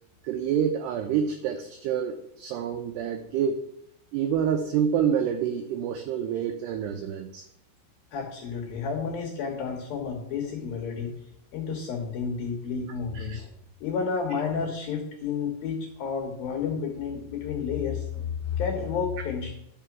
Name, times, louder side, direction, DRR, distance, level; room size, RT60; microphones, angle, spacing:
voice 1, 0.2-3.6 4.1-7.5 13.1-13.4, right 8 dB, 85° right, 6 dB, 2.3 m, -27 dB
voice 2, 8.1-11.1 11.5-13.5 13.8-19.6, left 6 dB, 70° left, 1 dB, 2.3 m, -31 dB
11.5 x 5.9 x 5.9 m, 0.78 s
omnidirectional pair, 5.6 m